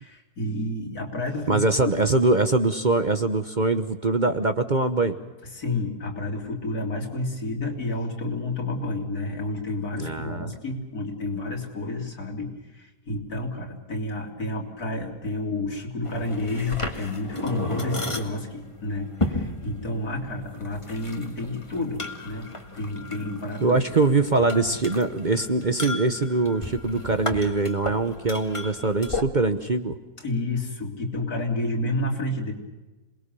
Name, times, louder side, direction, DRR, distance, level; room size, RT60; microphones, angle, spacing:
voice 1, 0.0-1.6 5.5-22.5 22.7-23.8 30.2-32.5, left 2 dB, 75° left, 2 dB, 3.8 m, -30 dB
voice 2, 1.5-5.2 10.0-10.5 23.6-30.0, right 3 dB, 35° right, 9 dB, 0.9 m, -23 dB
sound 1, 16.0-29.2, left 2 dB, 20° left, 1.9 m, -34 dB
27.5 x 20.5 x 6.8 m, 1.1 s
omnidirectional pair, 1.6 m